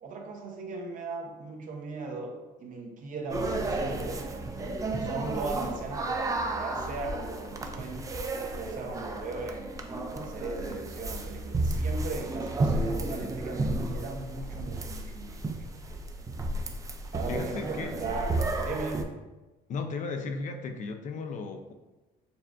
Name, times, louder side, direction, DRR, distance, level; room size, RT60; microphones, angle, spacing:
voice 1, 0.0-4.3 5.0-8.1 8.6-15.5 17.1-19.1, right 3 dB, 50° right, 2 dB, 0.7 m, -38 dB
sound 1, 3.3-19.0, right 2 dB, 20° right, 0.4 m, -32 dB
voice 2, 17.3-17.9 19.7-21.7, left 4 dB, 50° left, 5 dB, 0.5 m, -35 dB
6.7 x 2.5 x 2.4 m, 1.1 s
cardioid pair, 110°, 17 cm